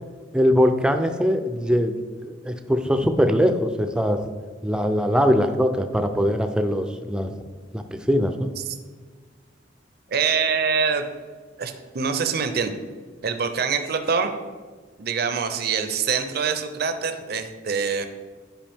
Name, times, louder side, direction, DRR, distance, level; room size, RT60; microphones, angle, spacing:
voice 1, 0.3-1.9 2.2-4.2 4.6-7.3 7.7-8.5, equal, 5° right, 7 dB, 0.5 m, -21 dB
voice 2, 10.1-11.0 11.6-12.7 13.2-14.3 15.0-18.1, right 6 dB, 55° right, 8 dB, 0.6 m, -24 dB
10.0 x 5.0 x 3.5 m, 1.5 s
head